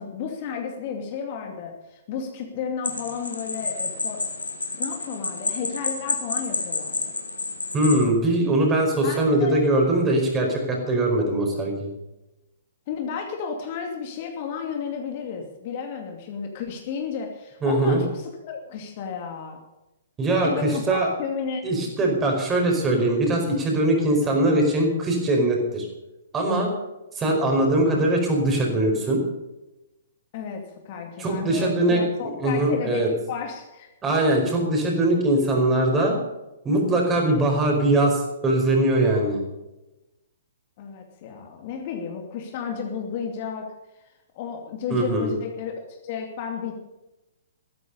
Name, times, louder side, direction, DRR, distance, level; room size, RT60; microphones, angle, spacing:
voice 1, 0.0-4.2 4.7-7.0 9.0-9.6 12.9-19.6 20.4-21.6 30.3-33.9 40.8-43.7 44.3-46.7, left 6 dB, 40° left, 3 dB, 2.5 m, -33 dB
sound 1, 2.8-8.1, left 3 dB, 70° left, 2.9 m, -30 dB
voice 2, 7.7-11.9 17.6-18.0 20.2-21.1 21.6-25.9 26.3-26.7 27.1-29.2 31.2-32.0 32.4-33.1 34.0-36.2 36.6-39.4 44.9-45.3, right 1 dB, 15° right, 1 dB, 5.0 m, -21 dB
15.0 x 13.5 x 5.5 m, 0.99 s
figure-of-eight pair, 115°, 0 cm